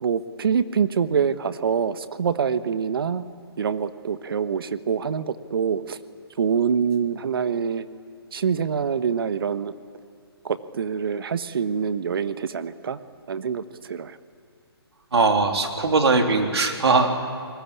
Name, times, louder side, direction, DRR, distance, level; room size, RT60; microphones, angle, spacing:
voice 1, 0.0-3.2 3.6-6.0 6.4-7.9 8.3-9.7 10.4-13.0 13.3-14.2, right 6 dB, 60° right, 12 dB, 1.3 m, -25 dB
voice 2, 15.1-17.2, right 3 dB, 80° right, 3 dB, 3.6 m, -20 dB
28.0 x 20.5 x 8.5 m, 2.3 s
hypercardioid pair, 155°, 13 cm